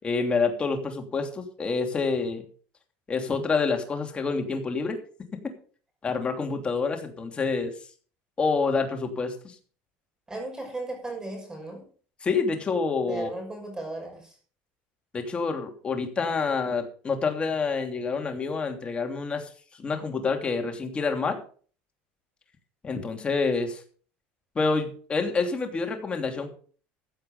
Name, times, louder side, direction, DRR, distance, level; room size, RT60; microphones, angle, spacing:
voice 1, 0.0-2.4 3.1-5.0 6.0-7.7 8.4-9.5 12.2-13.3 15.1-19.5 19.8-21.4 22.8-23.8 24.5-26.5, left 4 dB, 25° left, 4 dB, 3.0 m, -27 dB
voice 2, 10.3-11.8 13.1-14.3, right 2 dB, 15° right, 2 dB, 6.2 m, -35 dB
15.5 x 7.9 x 5.5 m, 0.43 s
cardioid pair, 125°, 4 cm